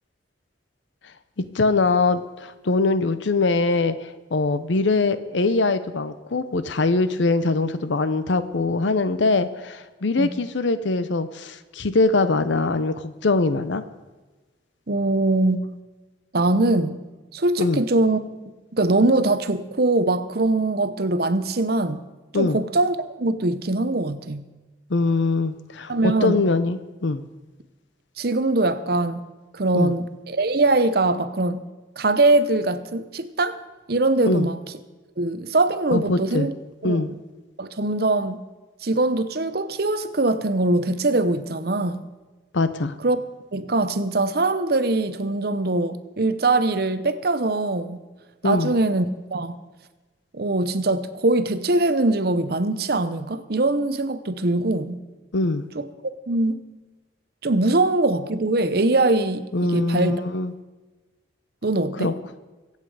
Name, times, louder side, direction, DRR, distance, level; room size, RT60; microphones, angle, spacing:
voice 1, 1.5-13.8 17.6-17.8 22.3-22.6 24.9-27.2 29.7-29.9 34.3-34.5 35.9-36.5 36.8-37.1 42.5-42.9 48.4-48.7 55.3-55.7 59.5-60.5 62.0-62.1, left 3 dB, 75° left, 13 dB, 0.7 m, -22 dB
voice 2, 14.9-15.7 16.3-17.0 17.3-18.2 18.7-22.1 22.3-24.5 25.9-26.4 28.2-29.2 29.5-31.6 32.0-33.6 33.9-34.6 35.2-36.5 36.8-37.2 37.6-38.4 38.8-42.0 43.0-43.2 43.5-48.0 48.4-49.6 50.3-55.0 55.7-55.9 56.3-56.6 57.4-60.2 61.6-62.1, right 2 dB, 55° right, 12 dB, 0.8 m, -22 dB
23.5 x 8.3 x 4.8 m, 1.2 s
head